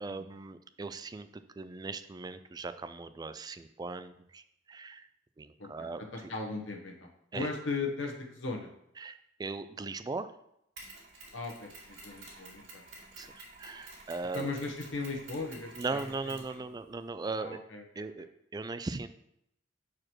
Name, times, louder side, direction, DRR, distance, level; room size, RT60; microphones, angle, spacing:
voice 1, 0.0-5.1 5.4-6.0 7.3-7.5 9.0-10.3 13.2-14.5 15.8-17.6 18.0-18.3 18.5-19.1, right 3 dB, 20° right, 11 dB, 0.3 m, -39 dB
voice 2, 5.6-8.7 11.3-12.8 14.3-16.3 17.4-18.3, left 3 dB, 80° left, 2 dB, 1.1 m, -38 dB
Mechanisms, 10.8-17.1, right 2 dB, 75° right, 2.4 m, -51 dB
6.2 x 4.9 x 4.5 m, 0.76 s
head